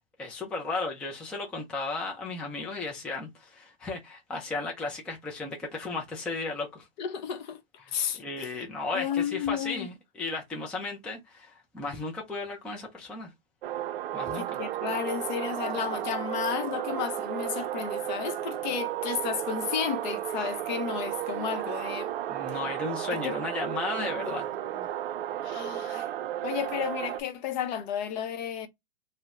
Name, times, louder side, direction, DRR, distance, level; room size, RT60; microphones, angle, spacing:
voice 1, 0.0-6.9 7.8-13.3 14.1-14.6 22.3-24.5, left 3 dB, 5° left, 0.3 m, -35 dB
voice 2, 7.0-7.6 7.9-8.5 8.9-9.9 14.4-22.1 22.5-22.6 23.1-23.3 24.0-24.3 24.7-24.9 25.4-26.1 26.4-28.7, left 8 dB, 50° left, 0.7 m, -33 dB
sound 1, 13.6-27.2, right 12 dB, 70° right, 0.5 m, -33 dB
2.8 x 2.1 x 3.4 m
hypercardioid pair, 130°, 30 cm